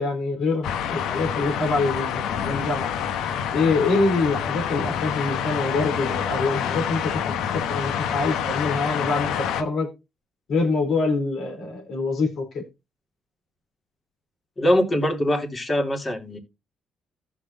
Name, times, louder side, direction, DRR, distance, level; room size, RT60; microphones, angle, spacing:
voice 1, 0.0-2.9 3.5-9.9 10.5-12.6, left 3 dB, 70° left, 4.0 m, -25 dB
sound 1, 0.6-9.6, left 8 dB, 85° left, 1.1 m, -27 dB
voice 2, 14.6-16.4, equal, 30° left, 3.1 m, -22 dB
15.0 x 6.1 x 2.7 m
cardioid pair, 90°, 0 cm